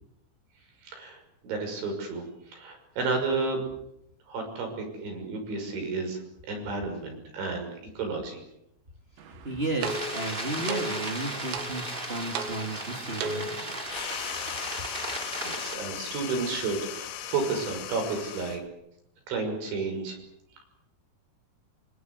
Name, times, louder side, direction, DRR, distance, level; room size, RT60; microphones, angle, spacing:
voice 1, 0.8-3.6 4.3-6.2 6.5-8.4 15.4-18.6 19.3-20.2, right 4 dB, 65° right, 4 dB, 8.4 m, -32 dB
sound 1, 9.2-13.8, right 4 dB, 85° right, 4.8 m, -37 dB
voice 2, 9.3-13.5, right 2 dB, 35° right, 5 dB, 1.0 m, -33 dB
sound 2, 9.8-15.8, right 1 dB, 10° right, 3.4 m, -35 dB
sound 3, 13.9-18.7, left 11 dB, 85° left, 4.2 m, -38 dB
25.5 x 24.5 x 8.2 m, 0.80 s
omnidirectional pair, 5.8 m